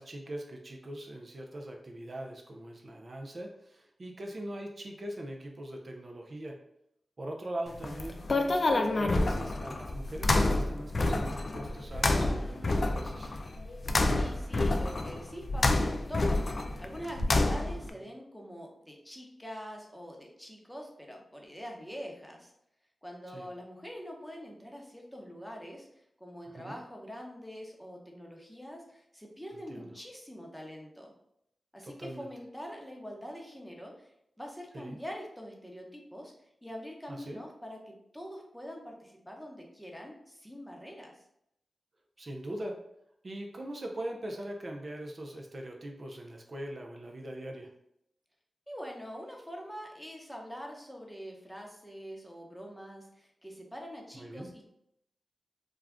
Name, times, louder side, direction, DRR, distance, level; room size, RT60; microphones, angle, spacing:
voice 1, 0.0-6.6 7.2-13.3 23.3-23.5 26.5-26.8 29.7-30.0 31.8-32.3 34.7-35.0 37.1-37.4 42.2-42.8 43.2-47.7 54.1-54.5, right 1 dB, 50° right, 1 dB, 0.4 m, -41 dB
sound 1, 7.7-17.9, left 2 dB, 55° left, 0.3 m, -28 dB
voice 2, 14.1-16.4 16.8-22.5 23.0-31.1 31.7-41.2 48.7-54.6, equal, 5° left, 0 dB, 0.7 m, -44 dB
2.3 x 2.1 x 3.5 m, 0.78 s
cardioid pair, 45°, 0 cm